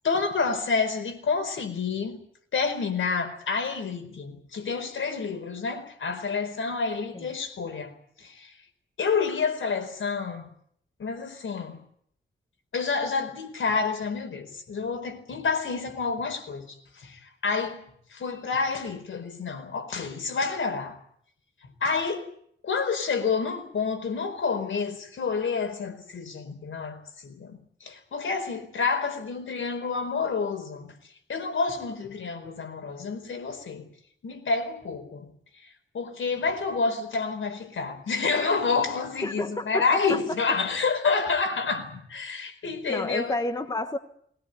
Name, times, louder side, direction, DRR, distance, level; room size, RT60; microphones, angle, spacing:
voice 1, 0.0-2.2 2.5-8.5 9.0-10.5 11.0-11.8 12.7-17.8 18.1-21.0 21.8-22.3 22.6-30.9 31.3-33.9 34.2-35.3 35.9-43.4, left 4 dB, 75° left, 4.5 m, -29 dB
voice 2, 39.2-40.6 42.9-44.0, left 1 dB, 20° left, 1.3 m, -31 dB
21.0 x 19.5 x 9.2 m
wide cardioid pair, 165°, 20 cm